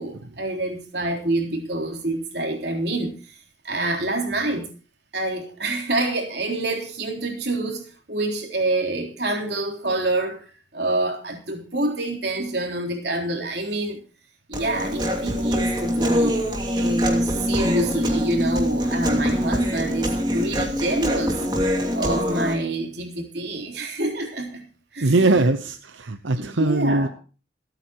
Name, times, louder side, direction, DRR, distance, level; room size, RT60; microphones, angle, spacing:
voice 1, 0.0-3.4 3.6-4.7 5.1-10.4 10.7-14.0 14.5-16.4 16.8-24.6 24.9-25.5 26.4-27.1, right 2 dB, 60° right, 2 dB, 3.7 m, -27 dB
Human voice, 14.5-22.5, equal, 20° right, 2.7 m, -24 dB
voice 2, 25.0-27.1, right 2 dB, 85° right, 8 dB, 0.9 m, -21 dB
27.5 x 9.2 x 3.0 m, 0.37 s
head